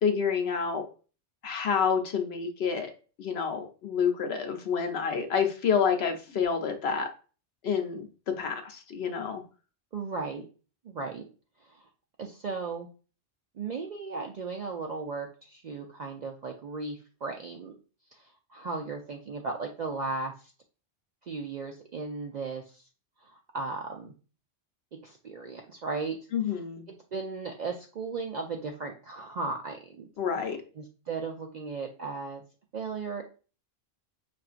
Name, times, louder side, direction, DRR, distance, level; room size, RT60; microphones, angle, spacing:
voice 1, 0.0-0.8 1.4-2.9 3.2-7.1 7.6-8.1 8.3-9.4 26.3-26.8 30.2-30.6, left 6 dB, 65° left, 5 dB, 0.9 m, -28 dB
voice 2, 9.9-10.4 10.8-11.3 11.6-11.9 12.2-12.9 13.6-17.7 18.1-20.5 21.2-22.8 23.2-24.1 25.0-26.2 27.1-30.1 30.8-32.4 32.7-33.2, right 4 dB, 65° right, 2 dB, 0.4 m, -36 dB
5.6 x 2.5 x 2.4 m, 0.36 s
omnidirectional pair, 1.2 m